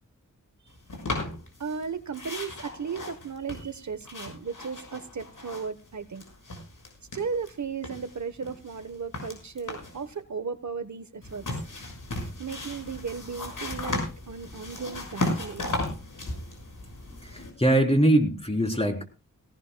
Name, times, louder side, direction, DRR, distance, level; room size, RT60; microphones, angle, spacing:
sound 1, 0.9-1.8 2.1-5.9 6.1-7.5 7.8-10.0 11.2-17.5, left 2 dB, 85° left, 6.4 m, -35 dB
voice 1, 1.6-6.2 7.1-11.5 12.4-15.7, right 5 dB, 65° right, 11 dB, 1.1 m, -35 dB
voice 2, 17.2-19.0, right 1 dB, 20° left, 2 dB, 3.6 m, -22 dB
19.5 x 18.0 x 2.2 m, 0.30 s
wide cardioid pair, 95°, 31 cm